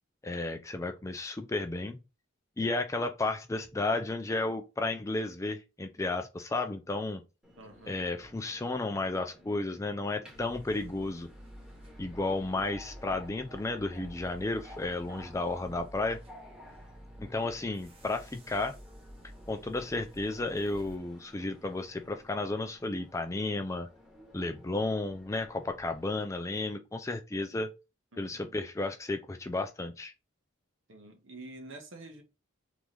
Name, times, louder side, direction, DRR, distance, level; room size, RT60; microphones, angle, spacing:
voice 1, 0.2-2.0 2.6-7.2 7.9-11.3 12.0-16.2 17.2-18.8 19.5-23.9 24.3-27.7 28.2-30.1, left 2 dB, 15° left, 0.3 m, -33 dB
Subway metro underground, 7.4-26.2, left 1 dB, 5° right, 1.2 m, -55 dB
voice 2, 7.6-8.0 28.1-28.6 30.9-32.2, right 2 dB, 65° right, 1.1 m, -48 dB
sound 1, 10.3-21.0, equal, 25° right, 0.8 m, -51 dB
3.5 x 3.1 x 4.0 m
head